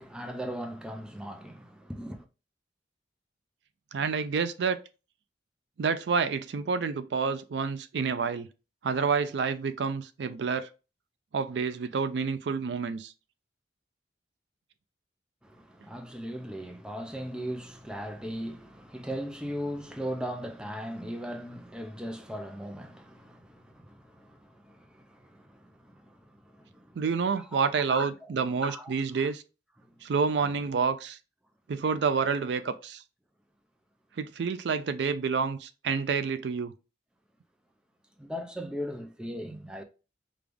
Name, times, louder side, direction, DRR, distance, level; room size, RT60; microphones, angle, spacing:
voice 1, 0.0-2.2 15.4-27.0 27.4-27.6 27.9-29.3 38.2-39.8, equal, 5° right, 0.5 m, -39 dB
voice 2, 3.9-4.8 5.8-8.5 8.8-10.7 11.3-13.1 27.0-29.4 30.0-31.2 31.7-33.0 34.2-36.7, right 5 dB, 80° right, 0.4 m, -28 dB
5.1 x 2.4 x 3.4 m
head